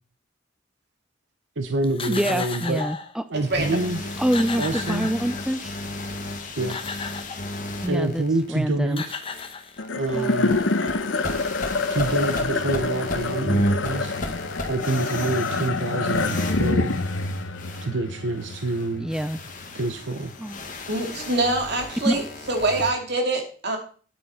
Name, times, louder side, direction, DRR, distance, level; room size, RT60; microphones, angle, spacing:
voice 1, 1.6-2.8 3.3-4.2 4.6-5.1 6.6-6.8 7.9-9.2 9.9-10.6 11.9-14.2 14.7-17.0 17.8-19.1 19.7-20.3, right 2 dB, 80° right, 7 dB, 0.9 m, -27 dB
sound 1, 1.8-3.1 3.8-3.9 4.1-5.7 6.4-7.5 8.5-8.6 8.9-10.1, left 5 dB, 30° left, 0.9 m, -35 dB
voice 2, 2.1-3.2 4.2-5.8 7.8-9.0 10.1-10.4 19.0-19.4 20.4-20.6 22.0-22.2, equal, 5° right, 11 dB, 0.3 m, -26 dB
sound 2, 3.3-8.7 9.2-22.9, left 1 dB, 45° left, 1.7 m, -33 dB
sound 3, 9.8-20.3, left 3 dB, 90° left, 0.9 m, -27 dB
voice 3, 20.9-22.2 22.5-23.8, right 2 dB, 60° right, 3 dB, 2.5 m, -24 dB
9.3 x 8.6 x 4.3 m, 0.42 s
head